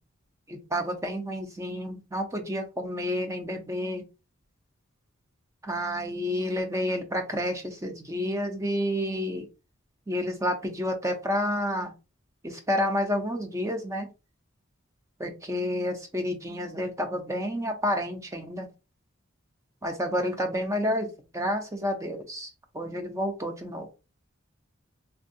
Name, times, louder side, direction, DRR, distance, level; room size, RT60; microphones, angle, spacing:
voice 1, 0.5-4.0 5.6-9.5 10.1-11.9 12.4-14.1 15.2-18.7 19.8-21.1 21.3-22.5 22.7-23.9, equal, 15° right, 4 dB, 0.5 m, -30 dB
3.3 x 2.2 x 2.6 m, 0.29 s
head